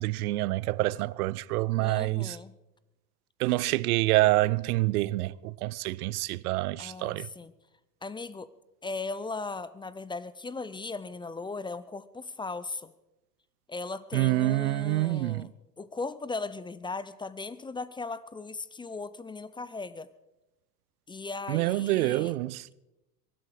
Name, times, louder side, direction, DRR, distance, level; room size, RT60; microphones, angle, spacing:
voice 1, 0.0-2.4 3.4-7.3 14.1-15.5 21.5-22.7, right 18 dB, 65° right, 0.6 m, -27 dB
voice 2, 1.8-2.5 6.8-7.5 8.0-8.5 8.8-12.9 13.7-15.5 15.8-20.1 21.1-22.3, left 3 dB, 10° left, 0.5 m, -37 dB
23.0 x 12.0 x 4.9 m
hypercardioid pair, 85°, 48 cm